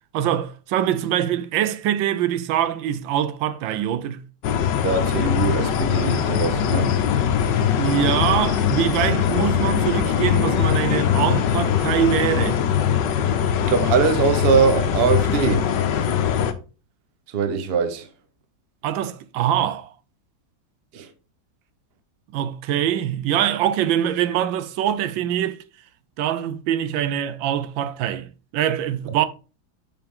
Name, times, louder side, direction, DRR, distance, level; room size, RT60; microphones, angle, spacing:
voice 1, 0.1-4.2 7.8-12.6 18.8-19.9 22.3-25.6 26.2-29.3, right 10 dB, 90° right, 1.4 m, -23 dB
sound 1, 4.4-16.5, left 8 dB, 75° left, 1.4 m, -21 dB
voice 2, 4.8-7.0 7.4-7.6 13.6-15.7 17.3-18.1 20.9-21.1, right 5 dB, 45° right, 0.8 m, -22 dB
sound 2, 6.3-11.8, left 7 dB, 50° left, 0.6 m, -34 dB
7.0 x 5.7 x 3.7 m
omnidirectional pair, 2.0 m